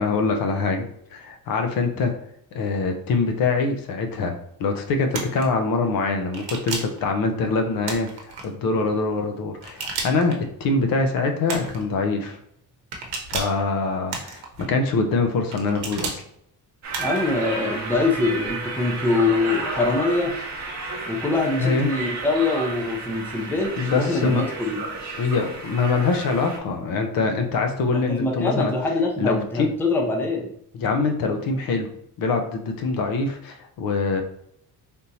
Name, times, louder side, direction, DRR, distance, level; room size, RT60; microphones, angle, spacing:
voice 1, 0.0-2.1 2.5-12.4 13.3-16.2 21.6-21.9 23.8-24.4 25.2-28.7 29.2-29.7 30.7-31.9 32.2-34.2, left 3 dB, 65° left, 5 dB, 0.6 m, -24 dB
sound 1, 5.1-5.5 6.3-7.0 7.8-8.5 9.6-10.4 11.5-11.8 12.9-13.6 14.1-14.7 15.5-16.2 16.9-17.3, right 4 dB, 85° right, 0.8 m, -32 dB
sound 2, 16.8-26.6, right 3 dB, 45° right, 0.8 m, -32 dB
voice 2, 17.0-20.4 21.1-23.7 24.0-24.8 27.9-30.5, left 3 dB, 5° left, -1 dB, 0.4 m, -24 dB
3.5 x 2.8 x 2.6 m, 0.71 s
cardioid pair, 135°, 38 cm